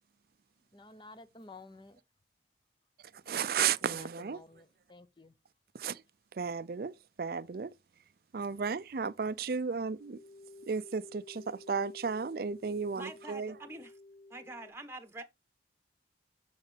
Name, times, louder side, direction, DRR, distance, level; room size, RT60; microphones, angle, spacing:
voice 1, 0.7-2.0 3.2-5.4, left 3 dB, 25° left, 0.6 m, -52 dB
voice 2, 3.1-4.4 5.7-6.0 6.3-7.7 8.3-10.2 10.7-13.5, right 6 dB, 55° right, 0.4 m, -34 dB
sound 1, 9.8-14.7, left 2 dB, 75° left, 1.6 m, -53 dB
voice 3, 12.9-13.9 14.3-15.2, right 2 dB, 15° right, 1.0 m, -45 dB
7.0 x 6.5 x 3.3 m
head